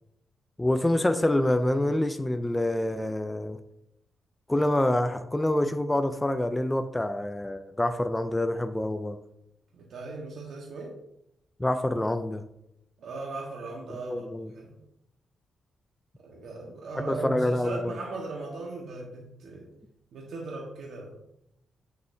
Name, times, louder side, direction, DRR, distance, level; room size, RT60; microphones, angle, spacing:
voice 1, 0.6-3.6 4.5-9.2 11.6-12.4 14.0-14.5 17.0-17.9, left 1 dB, 10° left, 8 dB, 0.4 m, -26 dB
voice 2, 9.7-10.9 13.0-14.2 14.5-14.8 16.2-19.7 20.1-21.2, right 3 dB, 75° right, -2 dB, 1.5 m, -38 dB
8.4 x 7.0 x 2.8 m, 0.81 s
cardioid pair, 105°, 0 cm